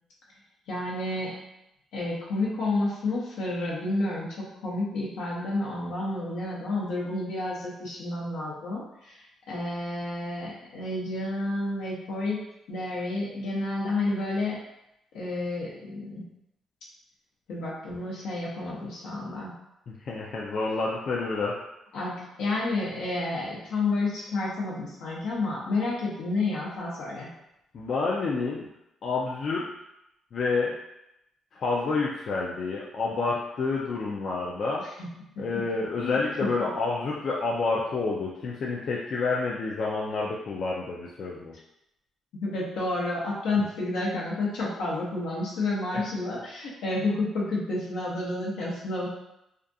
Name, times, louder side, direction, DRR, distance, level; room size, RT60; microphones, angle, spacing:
voice 1, 0.7-1.4 1.9-12.4 12.7-14.6 15.1-16.2 17.5-19.5 21.9-27.3 35.0-35.1 35.3-35.6 36.0-36.2 42.4-49.1, left 2 dB, 85° left, -5 dB, 0.8 m, -30 dB
voice 2, 19.9-21.6 27.7-28.7 29.0-29.7 30.3-30.8 31.5-34.9 35.4-41.5 45.9-46.0, left 3 dB, 55° left, -3 dB, 0.4 m, -29 dB
2.4 x 2.3 x 2.6 m, 0.85 s
cardioid pair, 90°, 0 cm